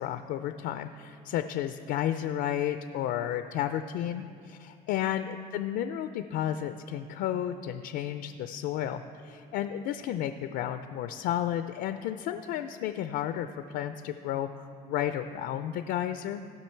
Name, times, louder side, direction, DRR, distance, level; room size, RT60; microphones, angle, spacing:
voice 1, 0.0-13.5 13.7-16.4, left 11 dB, 85° left, 9 dB, 0.4 m, -32 dB
17.5 x 6.0 x 4.4 m, 2.4 s
cardioid pair, 110°, 17 cm